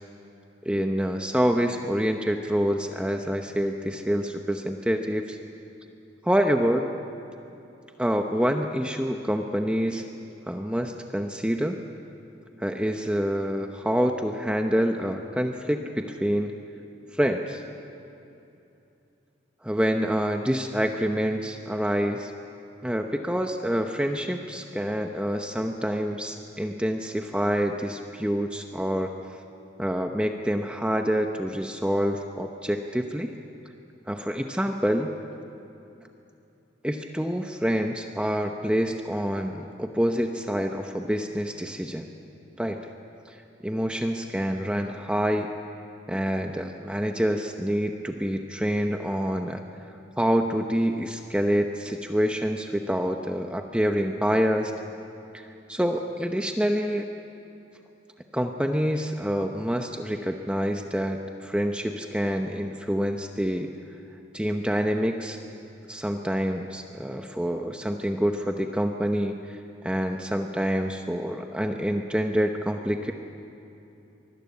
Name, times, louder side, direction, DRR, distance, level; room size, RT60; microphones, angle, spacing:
voice 1, 0.6-5.4 6.2-6.9 8.0-10.0 10.5-11.8 12.6-16.5 17.1-17.6 19.6-22.3 22.8-29.1 29.8-33.3 34.1-35.1 36.8-42.0 42.6-42.8 43.3-43.4 43.6-45.5 46.1-49.6 50.2-54.7 55.3-55.4 55.7-57.1 58.3-63.7 64.3-65.4 65.9-69.6 69.8-73.1, equal, 5° right, 4 dB, 0.8 m, -27 dB
24.5 x 20.0 x 8.6 m, 2.8 s
head